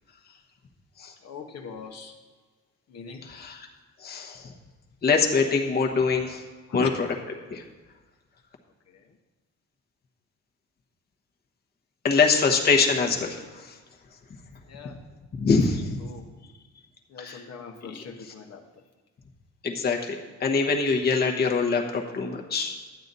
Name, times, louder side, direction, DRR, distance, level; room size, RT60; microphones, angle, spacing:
voice 1, 1.2-2.2 2.9-3.3 6.7-6.9 8.9-9.2 14.6-15.0 15.7-16.3 17.1-18.8, left 5 dB, 55° left, 2 dB, 1.0 m, -40 dB
voice 2, 3.2-3.7 4.0-4.5 5.0-6.4 6.7-7.1 7.5-7.6 12.0-13.8 15.3-16.1 17.2-17.4 19.6-22.8, left 4 dB, 35° left, 2 dB, 1.1 m, -24 dB
11.5 x 8.9 x 4.1 m, 1.4 s
cardioid pair, 145°, 29 cm